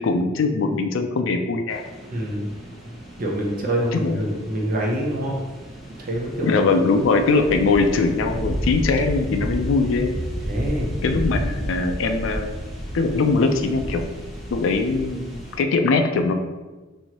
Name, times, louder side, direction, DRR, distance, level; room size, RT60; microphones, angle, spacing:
voice 1, 0.0-1.8 3.9-4.2 6.4-10.1 11.0-12.5 12.9-14.0 14.5-16.3, left 3 dB, 75° left, 5 dB, 0.4 m, -21 dB
sound 1, 1.7-15.6, equal, ahead, 1.0 m, -32 dB
voice 2, 2.1-2.5 3.2-5.4 6.0-6.6 10.5-10.9, right 1 dB, 45° right, -1 dB, 0.6 m, -25 dB
4.3 x 2.6 x 2.9 m, 1.2 s
head